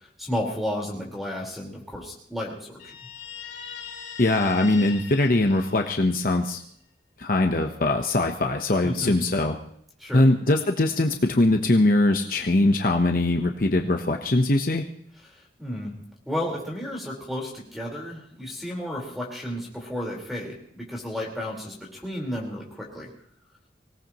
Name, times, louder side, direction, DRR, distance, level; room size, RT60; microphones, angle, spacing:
voice 1, 0.2-2.9 8.8-9.1 10.0-10.3 15.6-23.1, left 1 dB, ahead, -1 dB, 4.3 m, -32 dB
Guitar, 2.8-6.4, left 7 dB, 85° left, 2.7 m, -40 dB
voice 2, 4.2-6.6 7.2-9.6 10.1-14.8, left 2 dB, 50° left, 4 dB, 1.0 m, -21 dB
25.0 x 17.5 x 3.0 m, 0.66 s
head